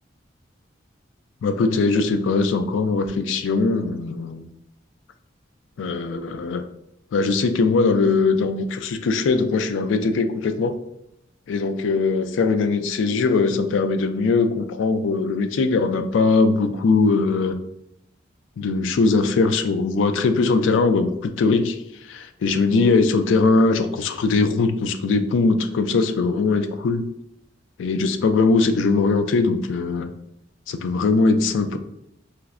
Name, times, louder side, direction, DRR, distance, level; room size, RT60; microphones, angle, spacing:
voice 1, 1.4-4.4 5.8-6.6 7.1-10.8 11.5-17.6 18.6-27.0 27.8-30.1 30.7-31.8, left 4 dB, 70° left, 8 dB, 0.3 m, -21 dB
4.4 x 2.0 x 2.4 m, 0.78 s
head